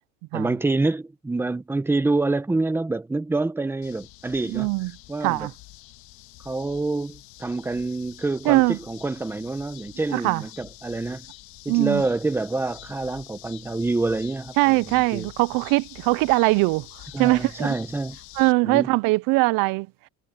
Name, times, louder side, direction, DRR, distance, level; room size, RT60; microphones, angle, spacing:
voice 1, 0.3-4.7 5.1-5.5 6.4-11.3 11.6-15.3 17.1-18.2 18.6-18.9, right 3 dB, 5° right, 0.9 m, -27 dB
sound 1, 3.8-18.5, left 18 dB, 70° left, 2.2 m, -46 dB
voice 2, 4.5-4.9 5.2-5.5 8.5-8.8 10.1-10.4 11.7-12.0 14.6-16.9 17.2-17.7 18.4-19.9, right 24 dB, 65° right, 0.5 m, -21 dB
cardioid pair, 160°, 36 cm